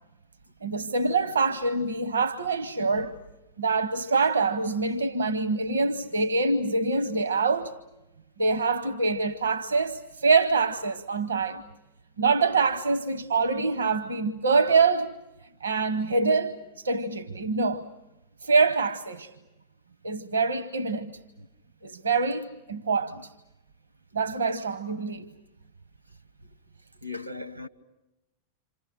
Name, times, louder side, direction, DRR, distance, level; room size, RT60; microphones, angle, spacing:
voice 1, 0.6-3.2 3.6-7.7 8.4-11.6 12.2-15.2 15.6-17.9 18.4-19.3 20.0-21.2 21.8-23.3 24.1-25.3, right 4 dB, 75° right, 1.0 m, -25 dB
voice 2, 27.0-27.7, left 3 dB, 90° right, 1.4 m, -38 dB
28.0 x 27.5 x 6.5 m
figure-of-eight pair, 90°, 0 cm